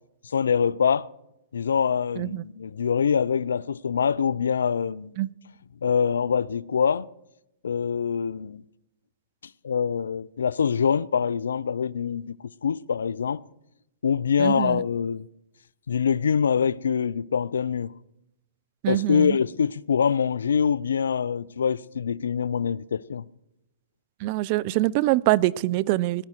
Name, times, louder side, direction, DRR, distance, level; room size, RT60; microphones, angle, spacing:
voice 1, 0.2-1.1 1.5-5.1 5.8-7.1 7.6-8.6 9.6-12.4 12.6-13.4 14.0-15.2 15.9-17.9 18.9-23.3, left 7 dB, 80° left, 0.4 m, -24 dB
voice 2, 14.4-14.8 18.8-19.4 24.2-26.3, right 17 dB, 45° right, 0.4 m, -24 dB
19.0 x 11.0 x 4.5 m
hypercardioid pair, 125°, 0 cm